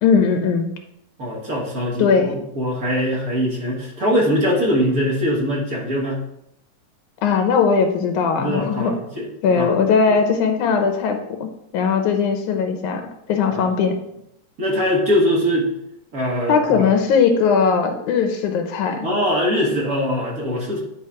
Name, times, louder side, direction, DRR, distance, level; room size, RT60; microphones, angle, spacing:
voice 1, 0.0-0.7 2.0-2.3 7.2-8.9 9.4-14.0 16.5-19.1, left 5 dB, 85° left, 5 dB, 2.3 m, -19 dB
voice 2, 1.2-6.2 8.4-9.3 9.5-9.7 10.1-10.2 13.5-13.7 14.6-15.7 16.1-16.9 19.0-20.8, equal, 40° right, -3 dB, 1.5 m, -22 dB
10.0 x 4.0 x 4.7 m, 0.79 s
omnidirectional pair, 3.4 m